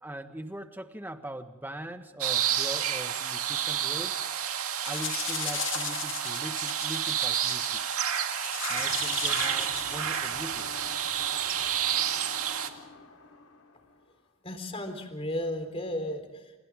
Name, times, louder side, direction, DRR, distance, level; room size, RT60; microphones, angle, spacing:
voice 1, 0.0-4.3 4.8-7.8 8.7-10.7, right 1 dB, 10° right, 7 dB, 1.5 m, -41 dB
sound 1, 2.2-12.7, right 9 dB, 85° right, 2.2 m, -30 dB
sound 2, 3.1-3.3 3.6-4.0 4.4-10.3, left 12 dB, 55° left, 1.1 m, -37 dB
sound 3, 8.7-14.3, left 2 dB, 85° left, 4.4 m, -48 dB
voice 2, 14.4-16.5, left 1 dB, 25° left, 7 dB, 3.9 m, -34 dB
29.5 x 29.0 x 3.7 m, 1.1 s
head